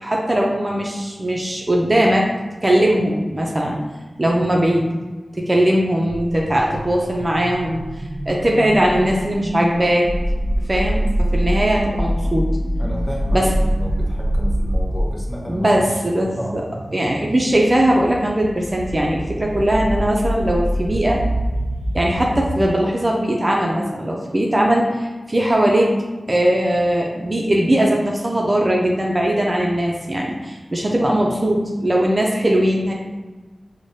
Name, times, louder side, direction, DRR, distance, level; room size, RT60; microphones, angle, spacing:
voice 1, 0.0-2.3 2.6-3.8 4.2-4.9 5.3-7.8 8.3-10.1 10.7-12.5 13.3-13.5 15.5-16.6 16.9-21.2 21.9-25.9 26.3-32.9, right 1 dB, 30° right, -2 dB, 0.5 m, -19 dB
sound 1, 6.1-22.7, equal, 80° right, 0.5 m, -25 dB
voice 2, 12.8-16.0 16.4-16.5 17.0-17.2, equal, 15° left, -3 dB, 0.8 m, -31 dB
4.7 x 2.1 x 2.7 m, 1.3 s
wide cardioid pair, 70°, 0 cm